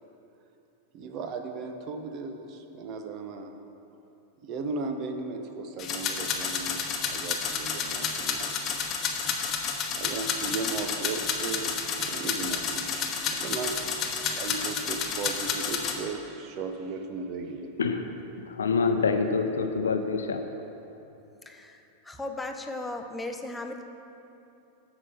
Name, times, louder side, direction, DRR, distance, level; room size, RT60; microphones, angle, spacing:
voice 1, 0.9-3.5 4.4-8.7 10.0-13.0 13.3-13.7 14.3-17.9, right 4 dB, 40° right, 6 dB, 0.9 m, -36 dB
sound 1, 5.8-16.0, left 6 dB, 30° left, 1.1 m, -30 dB
voice 2, 17.8-20.4, left 4 dB, 70° left, 7 dB, 0.6 m, -27 dB
voice 3, 21.5-23.8, left 2 dB, 10° left, 5 dB, 0.8 m, -36 dB
9.8 x 6.9 x 5.7 m, 2.8 s
figure-of-eight pair, 90°, 0 cm